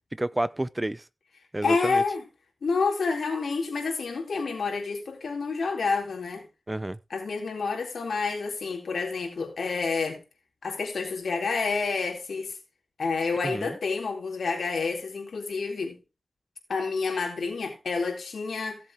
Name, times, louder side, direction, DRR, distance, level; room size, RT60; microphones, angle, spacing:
voice 1, 0.1-1.0 1.5-2.0 6.7-7.0 13.4-13.8, right 1 dB, 20° right, 0.7 m, -30 dB
voice 2, 1.6-2.2 2.6-6.5 7.1-10.2 10.6-12.6 13.0-16.0 16.7-18.8, left 4 dB, 85° left, 3.9 m, -29 dB
16.5 x 7.5 x 3.7 m
cardioid pair, 55°, 0 cm